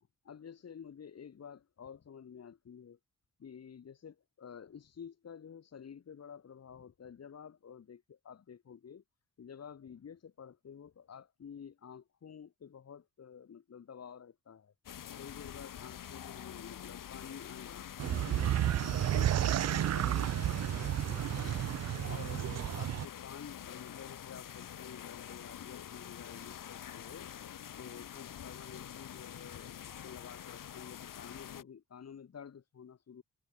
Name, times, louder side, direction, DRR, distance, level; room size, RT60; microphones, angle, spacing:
voice 1, 0.0-3.0 3.4-9.0 9.4-14.7 15.2-21.6 22.0-27.3 27.8-33.2, left 7 dB, 50° left, 2.2 m, -50 dB
sound 1, 14.8-31.6, left 10 dB, 75° left, 3.3 m, -46 dB
sound 2, 18.0-23.1, right 12 dB, 55° right, 0.5 m, -31 dB
cardioid pair, 100°, 32 cm